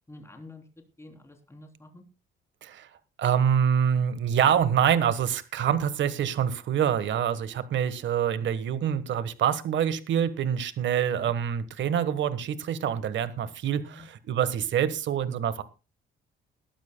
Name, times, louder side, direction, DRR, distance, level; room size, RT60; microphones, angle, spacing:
voice 1, 0.1-0.6 1.0-2.0 11.0-11.3 13.9-14.1, left 2 dB, 15° left, 3 dB, 3.4 m, -48 dB
voice 2, 3.2-15.6, right 8 dB, 70° right, 13 dB, 1.4 m, -26 dB
22.0 x 12.0 x 2.2 m, 0.29 s
cardioid pair, 90°, 20 cm